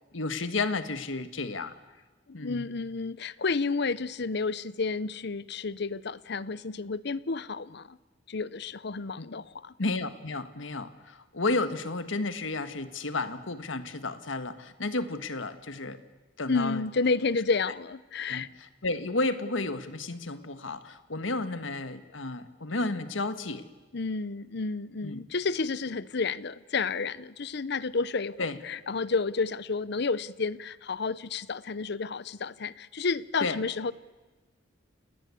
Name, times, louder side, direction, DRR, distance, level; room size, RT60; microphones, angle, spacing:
voice 1, 0.1-1.7 2.3-2.6 9.2-9.3 9.8-16.0 16.4-16.8 18.3-23.6 25.0-25.2 28.4-28.6 33.4-33.6, left 3 dB, 90° left, 10 dB, 1.6 m, -32 dB
voice 2, 2.3-8.0 8.3-9.7 16.5-18.5 23.9-28.4 28.6-33.9, left 4 dB, 60° left, 18 dB, 0.8 m, -31 dB
29.5 x 19.0 x 8.4 m, 1.2 s
head